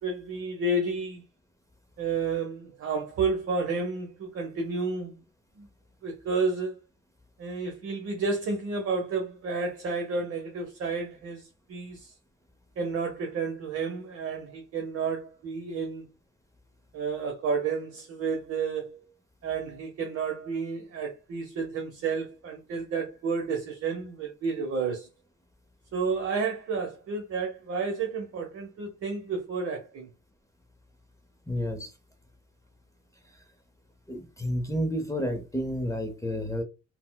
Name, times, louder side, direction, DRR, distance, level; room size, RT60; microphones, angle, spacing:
voice 1, 0.0-1.2 2.0-5.2 5.6-5.7 6.0-6.8 7.4-12.1 12.8-16.1 16.9-19.1 19.4-25.1 25.9-30.1, right 4 dB, 50° right, 0.7 m, -31 dB
voice 2, 31.5-31.9 33.2-33.4 34.1-36.6, equal, 10° left, 0.6 m, -31 dB
4.0 x 2.1 x 2.2 m
cardioid pair, 90°, 30 cm